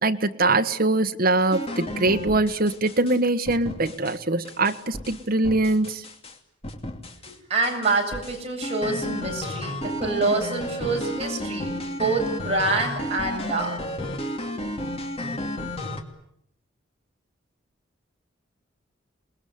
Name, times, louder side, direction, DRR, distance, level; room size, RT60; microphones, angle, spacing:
voice 1, 0.0-6.0, right 2 dB, 50° right, 6 dB, 1.6 m, -23 dB
sound 1, 1.5-3.2 3.5-4.2 4.4-6.4 6.6-7.3 7.6-16.0, left 1 dB, 30° left, 2.8 m, -32 dB
voice 2, 7.3-13.8, right 3 dB, 35° right, 0 dB, 7.8 m, -26 dB
28.5 x 21.0 x 9.5 m, 0.73 s
head